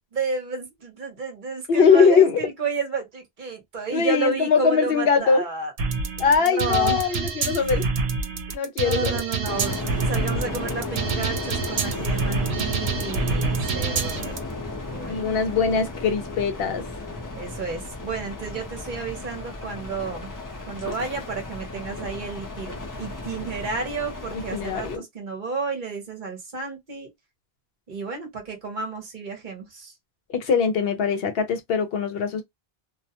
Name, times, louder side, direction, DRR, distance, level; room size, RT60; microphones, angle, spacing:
voice 1, 0.1-5.7 6.4-7.1 8.8-14.4 14.9-15.2 17.3-20.3 20.7-27.1 27.9-29.9, right 4 dB, 55° right, 0.9 m, -31 dB
voice 2, 1.7-2.4 3.9-5.4 6.2-7.8 8.5-9.2 15.1-16.8 24.3-25.0 30.3-32.4, left 6 dB, 70° left, 0.8 m, -21 dB
sound 1, 5.8-14.4, right 5 dB, 80° right, 0.8 m, -27 dB
sound 2, 9.4-25.0, left 2 dB, 25° left, 0.5 m, -34 dB
2.3 x 2.1 x 2.8 m
omnidirectional pair, 1.1 m